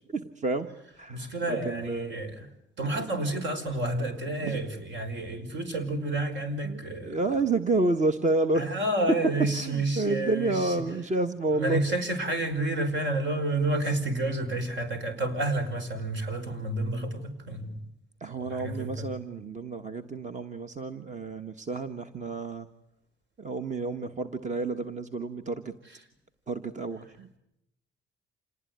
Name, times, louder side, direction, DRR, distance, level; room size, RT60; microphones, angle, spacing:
voice 1, 0.1-0.7 1.0-2.2 3.0-3.1 4.4-4.6 6.6-8.8 9.5-11.8 18.2-22.7 23.4-25.7 26.5-27.4, right 2 dB, 35° right, 8 dB, 1.5 m, -30 dB
voice 2, 1.1-2.5 2.8-7.2 8.6-10.8 11.5-17.8 18.4-19.1, right 2 dB, 70° right, 8 dB, 5.6 m, -30 dB
27.5 x 19.5 x 9.5 m, 0.81 s
cardioid pair, 90°, 20 cm